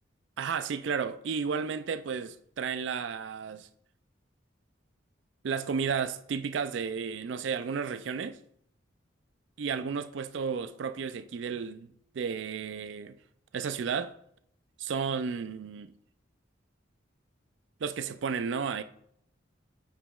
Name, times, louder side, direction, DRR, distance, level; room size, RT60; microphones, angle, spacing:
voice 1, 0.4-3.7 5.4-8.4 9.6-11.9 12.1-13.2 13.5-14.1 14.8-15.9 17.8-18.8, right 6 dB, 65° right, 0.4 m, -33 dB
8.9 x 4.9 x 2.3 m
head